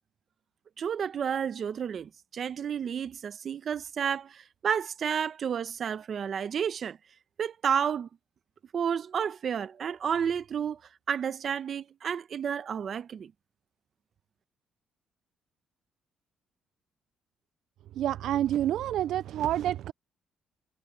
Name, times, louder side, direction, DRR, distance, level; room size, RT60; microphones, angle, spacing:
voice 1, 0.8-7.0 7.4-8.1 8.7-10.8 11.1-13.3, right 7 dB, 55° right, 1.0 m, -31 dB
voice 2, 18.0-19.9, right 12 dB, 80° right, 0.3 m, -28 dB
cardioid pair, 90°, 0 cm